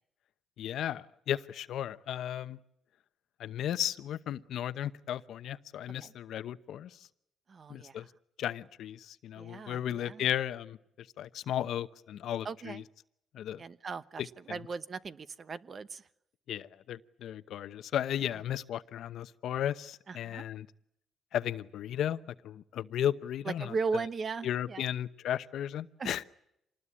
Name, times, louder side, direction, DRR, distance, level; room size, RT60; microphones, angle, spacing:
voice 1, 0.6-2.6 3.4-7.0 7.7-8.1 8.4-12.8 13.3-13.6 14.5-14.6 16.5-20.7 21.3-23.7 24.4-26.2, left 10 dB, 75° left, 13 dB, 0.9 m, -35 dB
voice 2, 7.5-8.1 9.4-10.3 12.4-12.8 13.6-16.0 20.1-20.5 23.4-24.8 26.0-26.2, right 4 dB, 45° right, 15 dB, 1.0 m, -38 dB
26.5 x 19.5 x 8.6 m, 0.82 s
cardioid pair, 90°, 0 cm